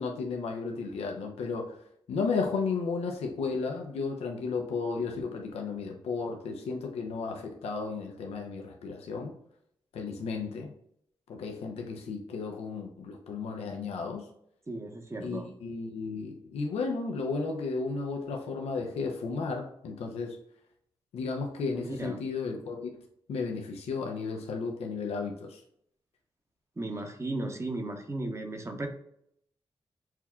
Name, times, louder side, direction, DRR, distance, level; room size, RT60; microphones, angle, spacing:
voice 1, 0.0-1.8 2.1-9.3 9.9-10.7 11.3-14.2 15.2-20.4 21.1-22.9 23.3-25.6, left 4 dB, 85° left, 2 dB, 0.5 m, -33 dB
voice 2, 14.7-15.5 21.7-22.2 26.8-28.9, right 2 dB, 25° right, 5 dB, 0.8 m, -35 dB
5.8 x 2.3 x 2.3 m, 0.71 s
cardioid pair, 50°, 10 cm